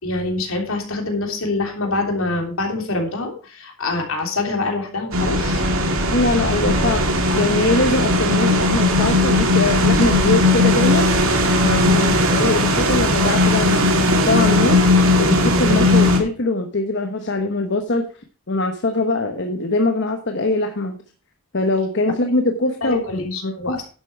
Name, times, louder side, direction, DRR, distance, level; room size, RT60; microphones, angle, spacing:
voice 1, 0.0-5.6 6.6-6.7 7.3-7.4 11.8-12.2 22.8-23.9, left 2 dB, 75° left, 2 dB, 3.3 m, -25 dB
sound 1, 5.1-16.2, left 1 dB, 75° right, 2.3 m, -17 dB
voice 2, 6.1-11.1 11.6-12.0 12.3-18.0 18.5-21.0 21.5-23.9, left 2 dB, 55° left, 5 dB, 1.1 m, -22 dB
11.0 x 8.2 x 4.6 m, 0.37 s
head